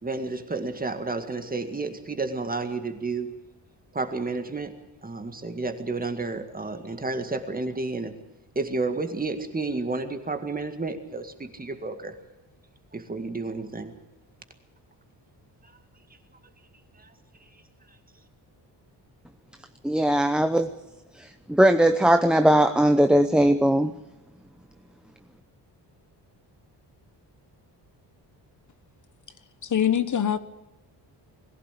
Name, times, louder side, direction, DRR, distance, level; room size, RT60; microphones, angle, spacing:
voice 1, 0.0-3.3 3.9-4.7 5.0-8.1 8.6-12.2 12.9-13.9 15.6-15.7 17.0-17.1, right 3 dB, 20° right, 2.0 m, -31 dB
voice 2, 19.8-20.7 21.5-23.9, right 1 dB, ahead, 0.8 m, -19 dB
voice 3, 29.6-30.4, left 9 dB, 45° left, 1.1 m, -23 dB
21.5 x 16.0 x 8.5 m
wide cardioid pair, 150°, 42 cm